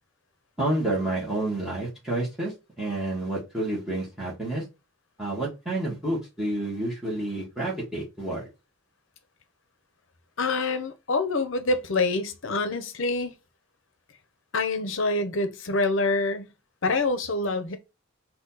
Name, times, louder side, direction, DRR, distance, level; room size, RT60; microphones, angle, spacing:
voice 1, 0.6-2.5 2.8-4.6 5.2-8.5, right 1 dB, ahead, 1.9 m, -29 dB
voice 2, 10.4-13.3 14.5-16.5 16.8-17.8, left 3 dB, 65° left, 0.8 m, -26 dB
4.0 x 2.9 x 3.9 m
head